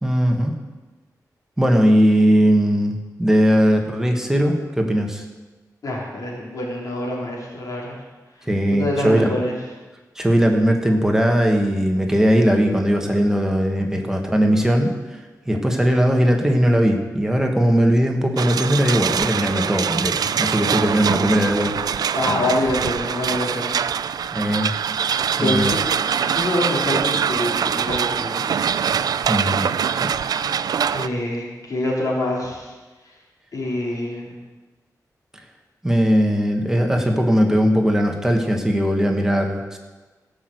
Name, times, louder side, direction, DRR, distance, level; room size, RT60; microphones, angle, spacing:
voice 1, 0.0-0.6 1.6-5.2 8.5-9.4 10.1-14.9 15.4-21.7 24.3-24.7 25.4-25.7 29.3-30.1 35.8-39.8, equal, 5° right, 2 dB, 1.4 m, -19 dB
voice 2, 5.8-8.0 8.7-9.5 22.1-23.8 25.3-25.8 26.2-28.4 30.9-32.7 33.5-34.3, left 1 dB, 60° left, -3 dB, 3.4 m, -25 dB
sound 1, 18.4-31.1, right 7 dB, 85° right, 0.4 m, -23 dB
16.0 x 6.3 x 7.9 m, 1.2 s
wide cardioid pair, 150°, 7 cm